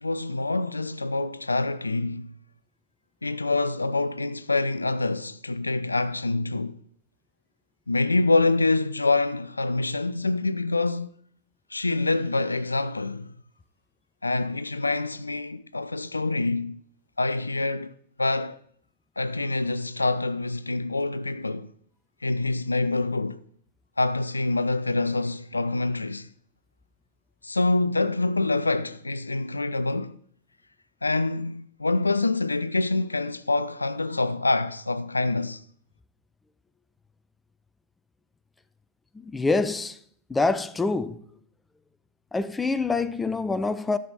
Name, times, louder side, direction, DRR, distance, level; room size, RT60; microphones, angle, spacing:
voice 1, 0.0-2.3 3.2-6.8 7.9-11.1 11.7-13.3 14.2-16.8 17.2-17.9 18.2-18.6 19.2-21.7 22.2-23.4 24.0-26.3 27.4-30.2 31.0-35.6, left 2 dB, 80° left, 0.3 m, -26 dB
voice 2, 39.1-40.0 40.3-41.2 42.3-44.0, left 3 dB, 10° left, 0.5 m, -26 dB
13.5 x 6.1 x 4.1 m
figure-of-eight pair, 90°, 0 cm